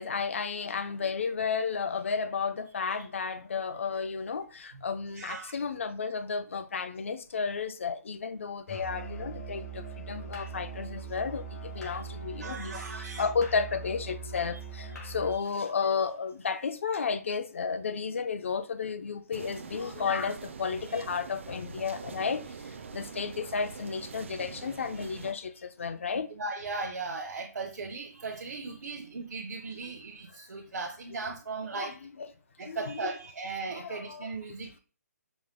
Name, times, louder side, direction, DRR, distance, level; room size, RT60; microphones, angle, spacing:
voice 1, 0.0-26.3 31.7-32.3 32.6-33.1 33.7-34.3, left 5 dB, 45° left, 0.4 m, -33 dB
voice 2, 5.1-5.5 11.8-12.0 12.4-13.3 14.5-14.6 14.9-15.0 15.3-15.4 18.1-18.2 20.9-21.0 26.3-32.0 32.6-34.8, right 4 dB, 90° right, 0.7 m, -38 dB
Musical instrument, 8.7-15.4, right 4 dB, 70° left, 1.9 m, -41 dB
sound 1, 19.3-25.3, right 5 dB, 45° right, 0.3 m, -44 dB
4.9 x 2.0 x 3.6 m
hypercardioid pair, 175°, 9 cm